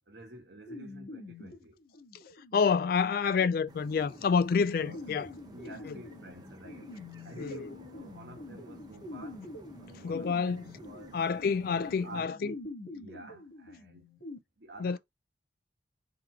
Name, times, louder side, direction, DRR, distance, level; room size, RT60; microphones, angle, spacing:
voice 1, 0.1-1.8 4.8-7.0 7.2-11.2 12.0-14.1 14.6-15.0, right 1 dB, 65° right, 1.4 m, -50 dB
sound 1, 0.7-14.4, left 2 dB, 85° left, 1.7 m, -46 dB
voice 2, 2.5-5.3 5.9-6.0 7.4-7.7 10.0-10.7 11.1-12.5 14.8-15.0, left 5 dB, 55° left, 0.3 m, -28 dB
sound 2, 3.7-12.2, right 1 dB, 20° right, 0.7 m, -53 dB
3.9 x 3.0 x 4.6 m
head